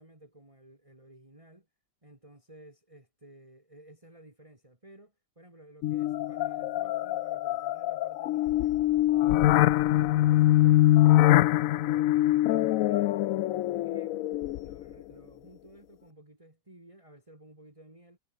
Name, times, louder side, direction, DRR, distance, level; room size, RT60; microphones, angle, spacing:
voice 1, 0.0-1.7 2.0-8.8 9.3-11.2 11.7-14.3 14.6-18.2, right 1 dB, 15° right, 3.6 m, -54 dB
sound 1, 5.8-14.9, left 14 dB, 75° left, 0.7 m, -24 dB
omnidirectional pair, 1.9 m